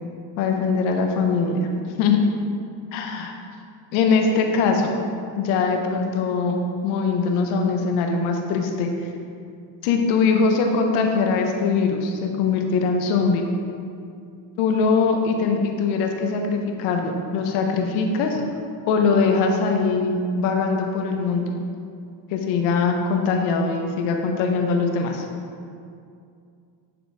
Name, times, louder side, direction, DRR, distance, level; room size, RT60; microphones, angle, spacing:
voice 1, 0.4-1.7 2.0-2.2 2.9-3.3 3.9-5.0 5.4-8.9 9.8-13.4 14.6-18.4 18.9-21.5 22.3-25.2, left 4 dB, 85° left, 3 dB, 0.9 m, -22 dB
8.5 x 3.9 x 3.4 m, 2.4 s
supercardioid pair, 85°, 48 cm